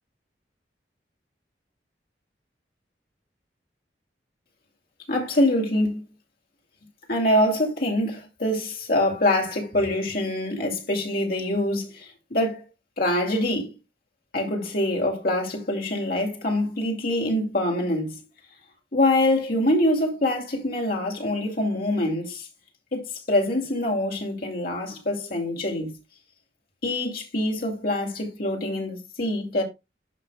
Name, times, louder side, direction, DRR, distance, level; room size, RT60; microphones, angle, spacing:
voice 1, 5.1-6.0 7.1-12.6 13.0-13.7 14.3-18.2 18.9-22.5 22.9-25.9 26.8-29.6, left 1 dB, 55° left, 2.6 m, -25 dB
11.0 x 5.8 x 2.3 m
head